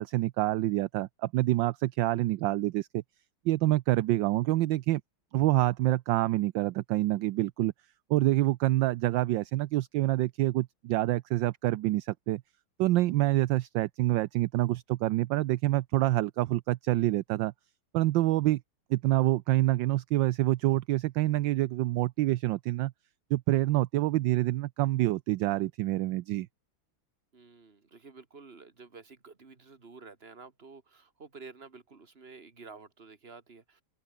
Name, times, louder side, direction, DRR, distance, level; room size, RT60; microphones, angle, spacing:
voice 1, 0.0-3.0 3.4-5.0 5.3-7.7 8.1-12.4 12.8-17.5 17.9-18.6 18.9-22.9 23.3-26.5, right 16 dB, 70° right, 1.2 m, -27 dB
voice 2, 27.3-33.8, right 4 dB, 30° right, 2.4 m, -50 dB
open air
omnidirectional pair, 2.4 m